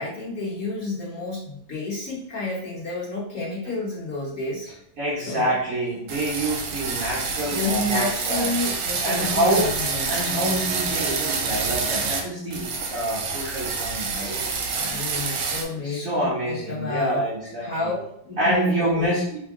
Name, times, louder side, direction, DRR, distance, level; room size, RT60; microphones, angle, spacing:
voice 1, 0.0-4.7 5.2-5.5 7.5-10.2 14.8-17.3 17.6-19.1, left 2 dB, 45° left, -9 dB, 1.3 m, -30 dB
voice 2, 5.0-8.5 9.0-9.7 10.1-14.4 15.7-17.9 18.4-19.4, right 1 dB, 55° right, -7 dB, 1.0 m, -26 dB
sound 1, 6.1-12.2 12.5-15.6, right 4 dB, 80° right, 1.4 m, -27 dB
3.5 x 2.2 x 3.6 m, 0.73 s
omnidirectional pair, 2.3 m